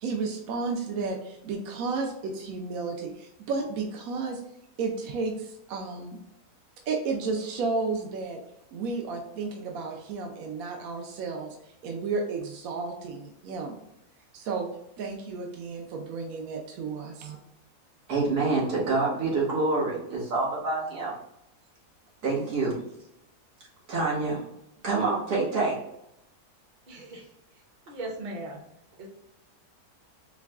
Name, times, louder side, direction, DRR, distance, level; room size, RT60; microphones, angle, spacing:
voice 1, 0.0-4.4 4.8-6.2 6.9-8.4 8.7-11.6 11.8-13.8 14.3-14.7 15.0-17.4, right 4 dB, 70° right, 2 dB, 1.0 m, -32 dB
voice 2, 18.1-21.2 22.2-22.8 23.9-24.4 24.8-25.8, right 3 dB, 90° right, -5 dB, 1.9 m, -26 dB
voice 3, 26.9-27.3 27.9-28.6 29.0-29.1, right 2 dB, 40° right, 0 dB, 0.8 m, -38 dB
4.7 x 2.2 x 3.4 m, 0.81 s
omnidirectional pair, 1.7 m